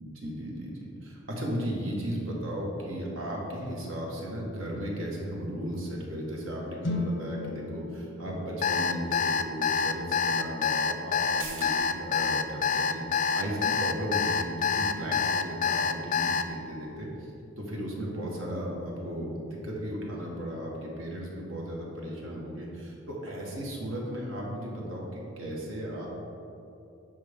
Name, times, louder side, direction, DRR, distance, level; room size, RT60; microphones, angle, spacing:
voice 1, 0.0-17.1 17.6-26.1, equal, 90° right, -3 dB, 1.6 m, -35 dB
sound 1, 6.8-10.9, left 2 dB, 70° left, 1.0 m, -37 dB
Alarm, 8.6-16.4, left 6 dB, 40° left, 0.3 m, -26 dB
sound 2, 11.2-18.3 18.7-18.8, right 3 dB, 75° right, 1.4 m, -51 dB
9.4 x 5.6 x 3.7 m, 2.9 s
head